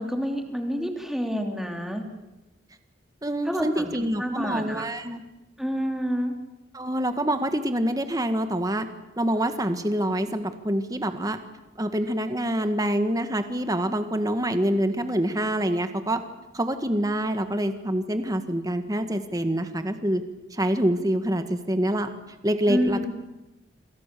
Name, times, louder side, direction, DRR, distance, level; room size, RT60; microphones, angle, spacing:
voice 1, 0.0-2.1 3.4-4.9 5.6-6.3 22.7-23.1, equal, ahead, 3 dB, 3.2 m, -28 dB
voice 2, 3.2-5.2 6.7-8.9 9.2-11.4 11.8-16.2 16.5-20.2 20.5-22.1 22.4-23.1, right 1 dB, 20° right, 8 dB, 1.8 m, -26 dB
27.5 x 26.5 x 7.0 m, 1.0 s
head